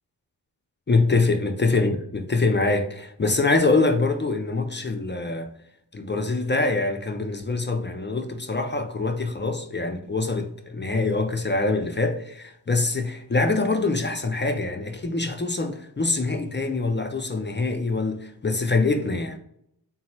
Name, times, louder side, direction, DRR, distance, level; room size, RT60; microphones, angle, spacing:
voice 1, 0.9-5.5 5.9-19.4, left 3 dB, 30° left, 0.4 m, -24 dB
3.8 x 2.0 x 4.3 m
wide cardioid pair, 95°, 42 cm